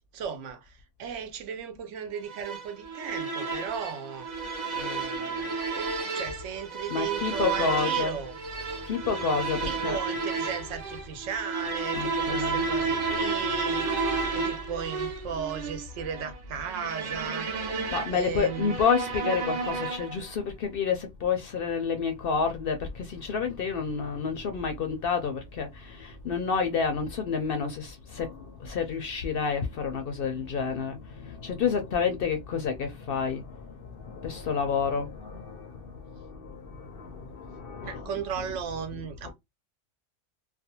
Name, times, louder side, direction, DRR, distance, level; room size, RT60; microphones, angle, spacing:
voice 1, 0.1-8.4 9.6-13.9 14.3-17.5 18.1-18.8 37.8-39.3, right 7 dB, 75° right, 0.9 m, -36 dB
sound 1, 2.3-20.3, right 4 dB, 50° right, 0.6 m, -32 dB
voice 2, 6.9-8.2 8.8-10.0 11.9-12.7 17.9-38.4 39.0-39.3, left 6 dB, 60° left, 0.6 m, -30 dB
2.4 x 2.2 x 2.8 m
omnidirectional pair, 1.3 m